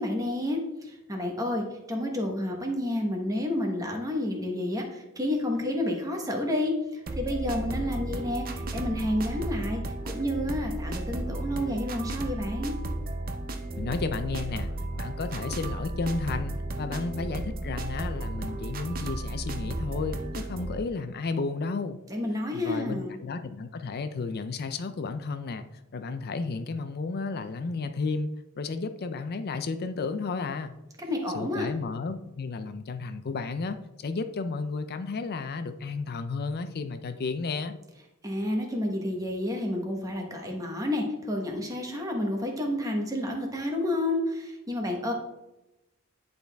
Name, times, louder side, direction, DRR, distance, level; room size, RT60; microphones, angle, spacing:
voice 1, 0.0-12.7 22.1-23.2 31.0-31.7 38.2-45.1, left 1 dB, 15° right, 1 dB, 1.2 m, -30 dB
sound 1, 7.1-20.8, right 2 dB, 40° right, 0.6 m, -34 dB
voice 2, 13.8-22.0 22.5-25.7 25.9-28.3 28.6-30.8 31.3-37.8, left 4 dB, 45° left, 10 dB, 0.5 m, -33 dB
10.5 x 4.0 x 3.4 m, 0.96 s
head